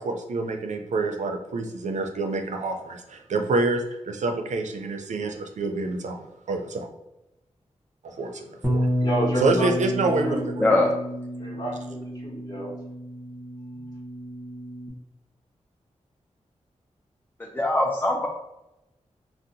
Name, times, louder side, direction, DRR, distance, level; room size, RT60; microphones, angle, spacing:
voice 1, 0.0-6.9 8.0-8.9 9.4-10.7, right 3 dB, 75° right, 4 dB, 0.4 m, -27 dB
Bass guitar, 8.6-14.9, equal, 5° right, 0.8 m, -30 dB
voice 2, 9.0-9.9 10.2-10.5 11.4-12.7 13.7-13.9, equal, 35° left, -5 dB, 1.4 m, -30 dB
voice 3, 10.6-10.9 17.5-18.3, left 2 dB, 15° left, 0 dB, 0.4 m, -21 dB
2.7 x 2.0 x 3.8 m, 0.95 s
wide cardioid pair, 70°, 13 cm